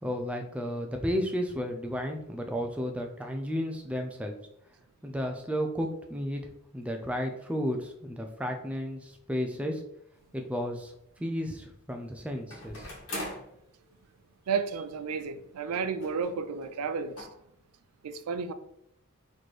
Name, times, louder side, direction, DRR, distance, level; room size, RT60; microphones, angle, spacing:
voice 1, 0.0-4.3 5.0-6.4 6.7-9.8 10.3-10.9 11.2-12.9, equal, 5° right, 0.3 m, -33 dB
sound 1, 10.1-10.2 12.5-13.5 14.5-14.6 14.8-14.9 16.0-16.3 16.6-16.7 17.2-17.3, left 1 dB, 70° left, 1.3 m, -39 dB
voice 2, 14.5-17.3 18.0-18.5, right 5 dB, 90° right, 0.4 m, -32 dB
4.2 x 3.0 x 3.1 m
head